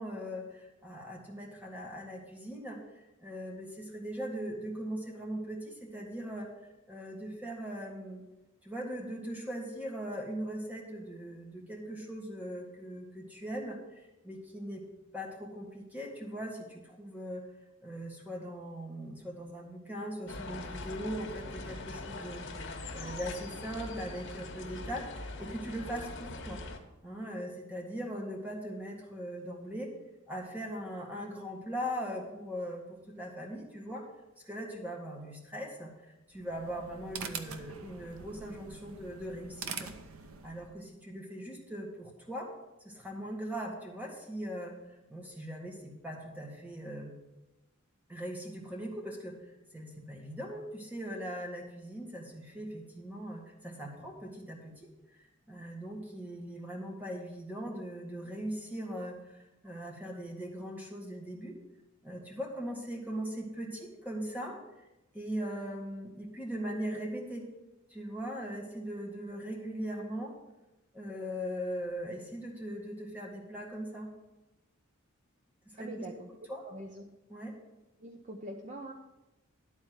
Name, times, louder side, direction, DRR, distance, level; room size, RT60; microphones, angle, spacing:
voice 1, 0.0-2.8 3.2-6.5 6.9-8.2 8.6-14.9 15.1-17.4 17.8-26.6 27.0-29.9 30.3-34.1 34.5-35.9 36.3-39.9 40.4-42.5 42.8-44.8 45.1-47.1 48.1-49.4 49.7-54.9 55.2-61.6 62.0-64.6 65.1-67.5 67.9-70.4 70.9-74.1 75.7-76.0 76.5-76.6 77.3-77.5, equal, 10° right, 0 dB, 1.7 m, -40 dB
sound 1, 20.3-26.8, left 2 dB, 60° left, 1.3 m, -42 dB
sound 2, 36.3-40.8, right 6 dB, 85° right, 0.8 m, -44 dB
voice 2, 75.7-76.3 76.6-77.1 78.0-78.9, right 1 dB, 35° right, 2 dB, 0.7 m, -44 dB
11.5 x 4.3 x 8.0 m, 0.99 s
head